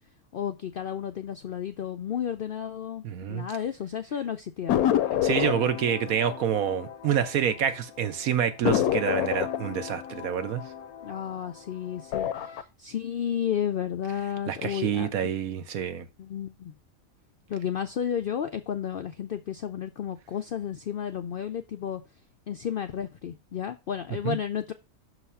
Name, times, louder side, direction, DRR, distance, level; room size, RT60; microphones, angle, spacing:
voice 1, 0.3-4.8 11.0-15.3 16.2-16.7 17.5-22.0 22.5-24.7, left 9 dB, 70° left, 0.5 m, -32 dB
voice 2, 3.0-3.5 5.2-10.6 14.5-16.1 24.2-24.4, right 8 dB, 80° right, 1.3 m, -27 dB
sound 1, 4.7-7.7 8.0-8.1 8.6-11.6 12.0-12.6, left 11 dB, 90° left, 1.1 m, -28 dB
6.2 x 4.1 x 5.5 m
omnidirectional pair, 1.5 m